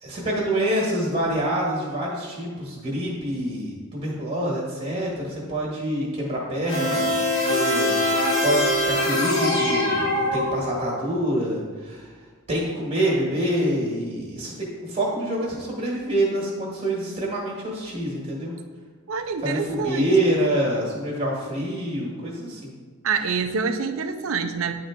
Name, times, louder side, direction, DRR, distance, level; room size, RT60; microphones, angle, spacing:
voice 1, 0.0-8.0 8.4-12.1 12.5-18.5 19.4-22.7, right 1 dB, 35° right, -4 dB, 1.4 m, -26 dB
sound 1, 6.7-11.0, left 1 dB, 60° left, 1.8 m, -23 dB
voice 2, 19.1-20.4 23.0-24.7, right 5 dB, 75° right, 8 dB, 0.5 m, -26 dB
9.9 x 3.8 x 3.6 m, 1.5 s
head